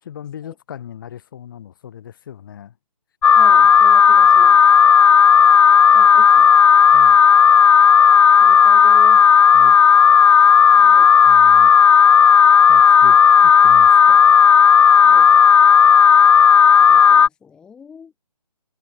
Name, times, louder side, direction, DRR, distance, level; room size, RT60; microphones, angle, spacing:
voice 1, 0.0-2.8 6.9-7.2 9.5-9.8 11.2-11.7 12.7-14.3, left 10 dB, 30° left, 2.2 m, -37 dB
Alarm, 3.2-17.3, left 7 dB, 50° left, 0.4 m, -11 dB
voice 2, 3.3-4.6 5.9-6.5 8.4-9.3 10.8-11.1 13.1-13.2 15.0-15.3 16.8-18.1, left 6 dB, 5° left, 1.0 m, -41 dB
hypercardioid pair, 165°, 20 cm